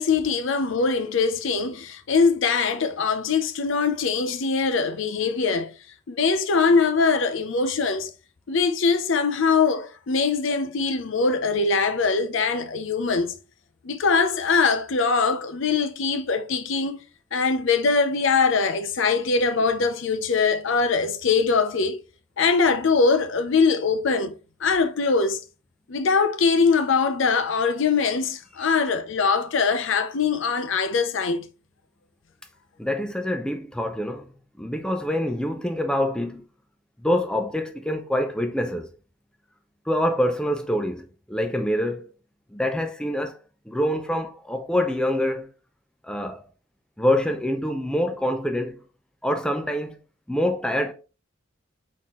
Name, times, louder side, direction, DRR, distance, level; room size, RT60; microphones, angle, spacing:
voice 1, 0.0-5.7 6.1-8.1 8.5-13.3 13.8-17.0 17.3-22.0 22.4-24.3 24.6-25.4 25.9-31.4, left 4 dB, 65° left, 0.6 m, -22 dB
voice 2, 32.8-34.3 34.6-36.4 37.0-38.9 39.9-42.1 42.5-43.4 43.7-45.5 46.0-46.4 47.0-48.8 49.2-50.0 50.3-50.9, left 1 dB, 5° left, 0.5 m, -25 dB
4.2 x 4.1 x 3.0 m
head